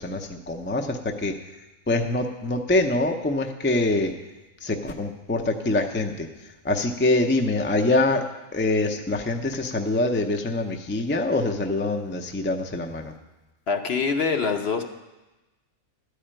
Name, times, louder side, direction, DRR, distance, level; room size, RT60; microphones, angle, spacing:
voice 1, 0.0-1.3 1.9-4.1 4.6-6.3 6.6-8.3 8.5-13.1, left 2 dB, 15° left, 4 dB, 0.4 m, -24 dB
voice 2, 13.7-14.8, left 5 dB, 55° left, 5 dB, 0.9 m, -24 dB
12.5 x 4.9 x 8.8 m, 1.1 s
omnidirectional pair, 1.4 m